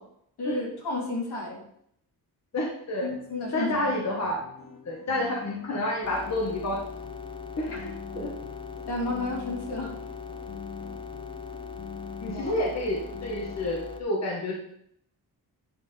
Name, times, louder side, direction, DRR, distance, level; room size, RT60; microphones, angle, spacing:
voice 1, 0.4-1.6 3.0-3.8 7.7-7.8 8.2-8.3 8.9-10.0 12.3-12.6, left 2 dB, 75° left, -2 dB, 2.7 m, -32 dB
voice 2, 2.5-3.1 3.5-4.4 4.8-6.8 7.6-8.3 12.2-14.5, left 1 dB, 40° left, -2 dB, 1.3 m, -29 dB
sound 1, 3.1-13.7, left 5 dB, 60° left, 1.7 m, -46 dB
sound 2, 6.0-14.0, left 5 dB, 15° left, 0.5 m, -40 dB
8.9 x 4.7 x 4.2 m, 0.71 s
wide cardioid pair, 160°, 40 cm